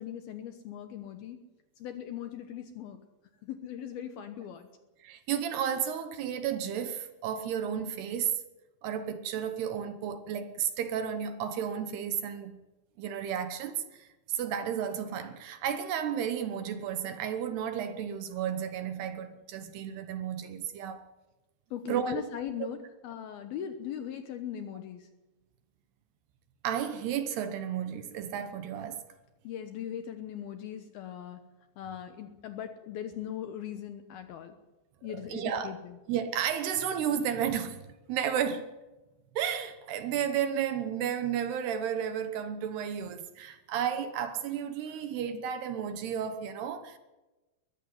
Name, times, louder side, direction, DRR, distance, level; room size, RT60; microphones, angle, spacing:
voice 1, 0.0-1.4 1.8-3.0 3.4-4.7 21.7-22.8 23.0-25.1 29.4-31.4 31.8-34.6 35.0-36.0, left 9 dB, 70° left, 2.4 m, -39 dB
voice 2, 5.0-8.4 8.8-12.5 13.0-14.1 14.3-21.1 21.9-22.2 22.6-22.7 26.6-29.0 35.1-35.7 36.1-37.8 38.1-38.7 39.4-47.0, right 8 dB, 70° right, 2.9 m, -32 dB
22.0 x 13.0 x 9.8 m
omnidirectional pair, 5.4 m